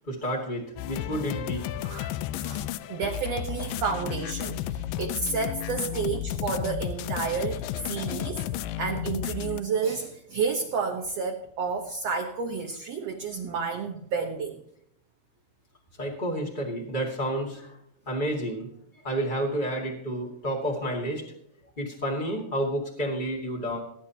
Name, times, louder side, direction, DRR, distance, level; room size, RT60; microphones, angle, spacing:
voice 1, 0.1-1.6 16.0-17.8 18.0-18.7 19.0-21.3 21.8-23.8, right 1 dB, 25° left, -2 dB, 1.1 m, -30 dB
sound 1, 0.8-9.6, left 12 dB, 85° left, 2.0 m, -33 dB
voice 2, 1.8-8.5 8.8-14.6, right 5 dB, 65° right, 2 dB, 1.7 m, -31 dB
20.5 x 9.9 x 2.9 m, 0.73 s
omnidirectional pair, 4.4 m